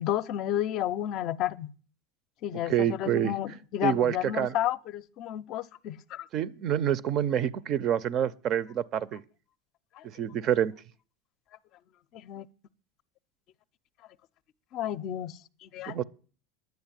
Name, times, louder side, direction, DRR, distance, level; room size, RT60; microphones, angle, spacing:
voice 1, 0.0-1.7 2.4-6.3 10.0-10.1 12.1-12.5 14.7-16.0, left 12 dB, 50° left, 0.5 m, -32 dB
voice 2, 2.7-3.3 3.8-4.5 6.3-9.2 10.0-10.7 15.9-16.0, right 10 dB, 40° right, 0.6 m, -27 dB
10.5 x 7.7 x 8.9 m
supercardioid pair, 135°, 0 cm